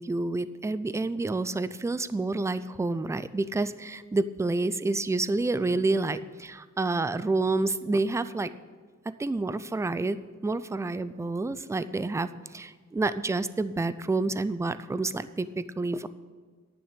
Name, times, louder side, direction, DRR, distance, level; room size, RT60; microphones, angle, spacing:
voice 1, 0.0-8.5 9.2-16.1, right 3 dB, 10° right, 14 dB, 0.3 m, -29 dB
10.5 x 6.0 x 8.2 m, 1.5 s
wide cardioid pair, 115°, 29 cm